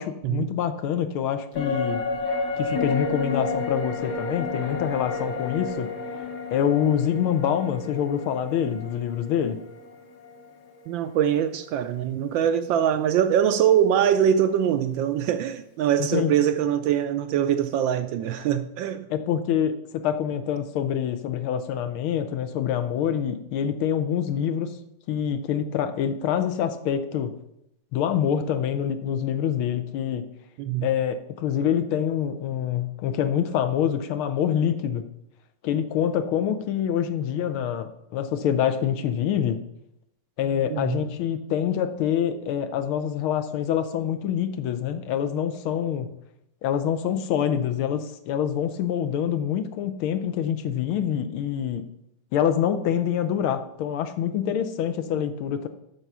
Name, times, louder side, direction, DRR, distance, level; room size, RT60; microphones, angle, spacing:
voice 1, 0.0-2.0 2.6-5.9 6.5-9.6 16.0-16.3 19.1-24.7 25.1-27.4 27.9-30.3 30.8-35.0 35.6-39.6 40.4-46.1 46.6-51.9 52.3-55.7, left 9 dB, 80° left, 1.6 m, -26 dB
sound 1, 1.5-11.1 11.4-11.5, left 3 dB, 55° left, 1.5 m, -31 dB
voice 2, 10.9-19.1 30.6-30.9 40.7-41.0, right 9 dB, 75° right, 1.1 m, -23 dB
8.0 x 5.6 x 6.0 m
omnidirectional pair, 2.4 m